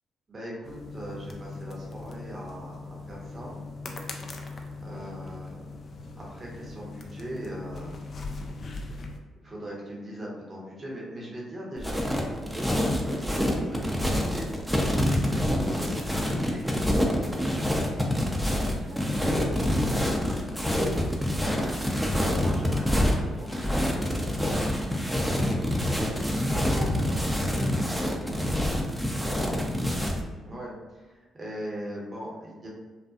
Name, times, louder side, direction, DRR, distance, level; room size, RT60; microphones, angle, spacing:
voice 1, 0.3-3.5 4.8-5.7 6.2-8.0 9.4-12.7 13.0-17.4 21.5-24.8 30.4-32.7, equal, 40° right, -4 dB, 0.9 m, -40 dB
sound 1, 0.6-9.2, left 3 dB, 50° left, 0.4 m, -40 dB
sound 2, 11.8-30.2, left 1 dB, 5° right, 0.5 m, -26 dB
voice 2, 18.8-20.3 26.5-28.7 29.1-29.8, right 2 dB, 65° right, -4 dB, 0.6 m, -42 dB
2.5 x 2.3 x 2.4 m, 1.4 s
hypercardioid pair, 45°, 0 cm